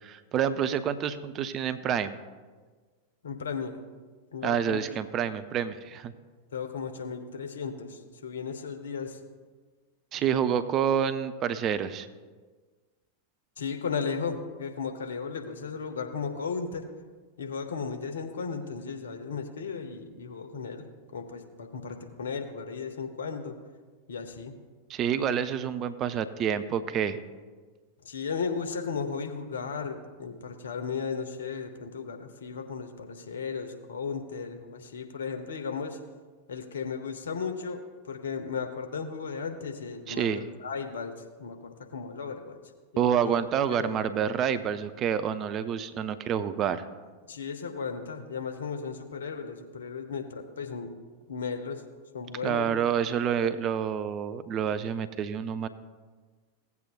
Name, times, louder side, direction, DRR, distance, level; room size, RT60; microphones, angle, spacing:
voice 1, 0.0-2.2 4.4-6.1 10.1-12.1 24.9-27.2 40.1-40.4 43.0-46.8 52.4-55.7, right 8 dB, 30° right, 12 dB, 0.5 m, -28 dB
voice 2, 3.2-3.8 4.3-4.9 6.5-9.2 13.6-16.9 17.4-23.6 24.1-24.5 25.2-25.3 28.0-36.0 36.5-42.6 42.9-43.3 43.7-44.0 47.3-50.9 51.3-51.8 52.1-52.7, left 5 dB, 65° left, 6 dB, 1.0 m, -35 dB
16.5 x 8.2 x 2.4 m, 1.4 s
figure-of-eight pair, 90°, 0 cm